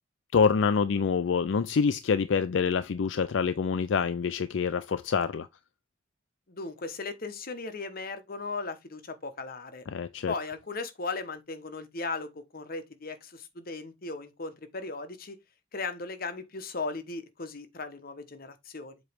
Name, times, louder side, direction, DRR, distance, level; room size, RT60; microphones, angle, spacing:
voice 1, 0.3-5.5 9.9-10.3, left 5 dB, 75° left, 0.4 m, -26 dB
voice 2, 6.5-9.8 10.3-15.4 15.7-19.0, left 3 dB, 50° left, 1.1 m, -37 dB
7.6 x 3.1 x 5.1 m
head